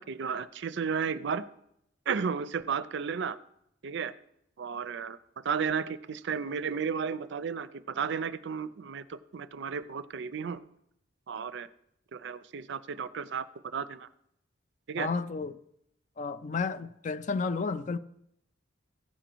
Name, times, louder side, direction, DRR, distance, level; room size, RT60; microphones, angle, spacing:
voice 1, 0.0-1.4 2.1-3.4 3.8-4.1 4.6-10.6 11.3-11.7 12.1-14.1 14.9-15.1, right 6 dB, 65° right, 0.5 m, -33 dB
voice 2, 15.0-15.6 16.2-18.0, left 4 dB, 40° left, 0.4 m, -32 dB
15.0 x 5.1 x 4.5 m
head